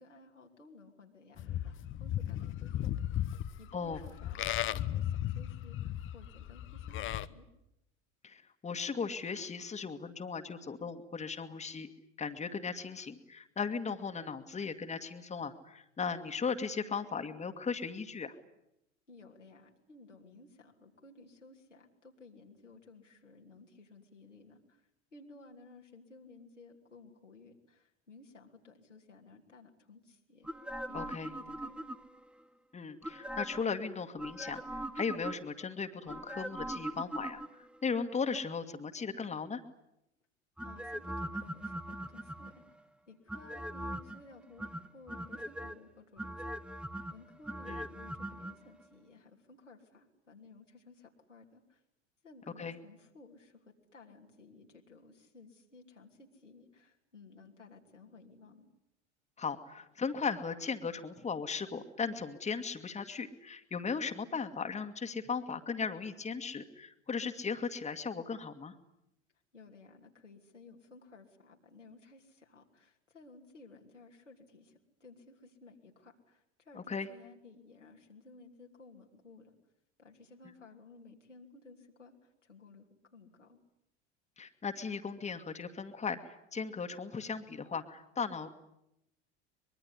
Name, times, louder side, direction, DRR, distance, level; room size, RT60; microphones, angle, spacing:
voice 1, 0.0-1.7 2.0-2.9 3.3-7.5 19.1-30.5 30.8-31.9 40.6-42.6 43.1-46.8 47.1-51.8 52.2-58.7 69.5-79.5 80.0-82.8 83.1-83.6, left 3 dB, 85° left, 0 dB, 3.1 m, -56 dB
Livestock farm animals working animals, 1.4-7.3, left 12 dB, 35° left, 0.9 m, -36 dB
voice 2, 8.2-11.9 12.2-18.3 30.9-31.3 32.7-39.6 47.7-47.8 52.6-52.8 59.4-68.7 76.8-77.1 84.4-88.5, left 5 dB, 20° left, 7 dB, 1.9 m, -37 dB
sound 1, 30.4-32.3 33.0-33.7 34.2-35.6 36.1-37.8 40.6-42.7 43.3-44.2 44.6-45.7 46.2-48.5 48.8-48.9, right 1 dB, 5° right, 1.0 m, -41 dB
24.0 x 22.5 x 9.9 m, 0.84 s
figure-of-eight pair, 75°, 35 cm